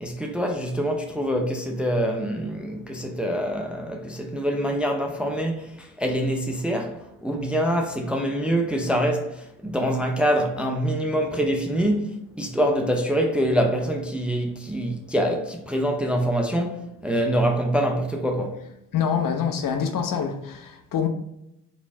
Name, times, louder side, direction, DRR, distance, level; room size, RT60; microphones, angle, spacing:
voice 1, 0.0-18.7, equal, ahead, 0.6 m, -25 dB
voice 2, 18.9-21.1, left 7 dB, 45° left, 0.7 m, -25 dB
4.1 x 3.1 x 3.4 m
hypercardioid pair, 50°, 46 cm